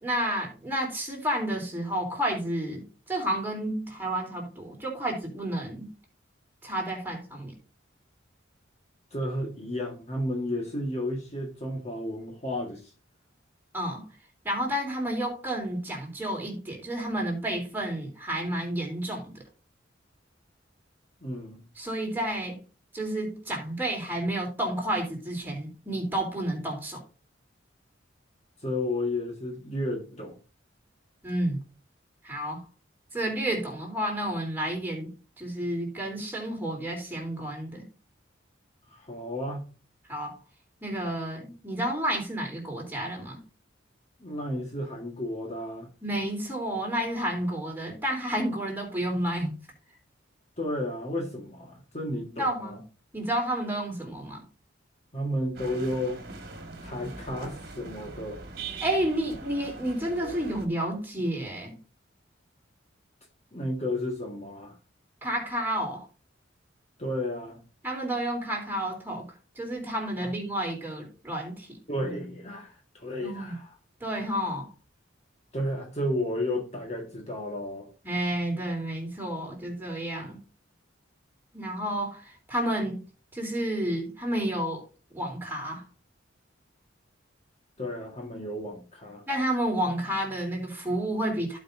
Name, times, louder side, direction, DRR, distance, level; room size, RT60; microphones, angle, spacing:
voice 1, 0.0-5.9 6.6-7.5 13.7-14.0 14.5-19.4 21.8-22.6 22.9-27.0 31.2-31.6 32.2-32.6 33.1-37.8 40.1-40.4 40.8-43.4 46.0-49.5 52.4-52.8 53.1-54.4 58.8-61.8 65.2-66.1 67.8-69.3 69.6-71.8 73.2-73.5 74.0-74.7 78.0-80.4 81.5-83.0 83.3-84.8 85.1-85.9 89.3-91.6, right 1 dB, 10° right, 3.6 m, -30 dB
voice 2, 9.1-12.9 21.2-21.6 28.6-30.4 38.9-39.6 44.2-45.9 50.6-52.8 55.1-56.2 56.8-58.4 63.5-64.8 67.0-67.6 70.2-70.3 71.9-73.7 75.5-77.9 87.8-89.2, left 1 dB, 35° left, 1.8 m, -32 dB
sound 1, 55.6-60.7, right 4 dB, 50° right, 1.7 m, -41 dB
15.5 x 5.3 x 2.7 m
head